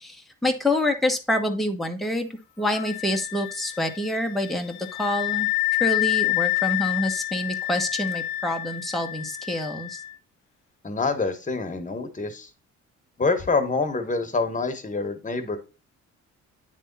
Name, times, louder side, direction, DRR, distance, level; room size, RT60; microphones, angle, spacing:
voice 1, 0.0-2.3 2.6-10.0, left 1 dB, ahead, 3 dB, 1.2 m, -27 dB
Wind instrument woodwind instrument, 2.7-10.1, left 19 dB, 85° left, 0.6 m, -28 dB
voice 2, 10.8-12.5 13.2-15.6, left 3 dB, 25° left, 6 dB, 1.4 m, -26 dB
9.1 x 3.5 x 4.0 m, 0.30 s
cardioid pair, 90°, 30 cm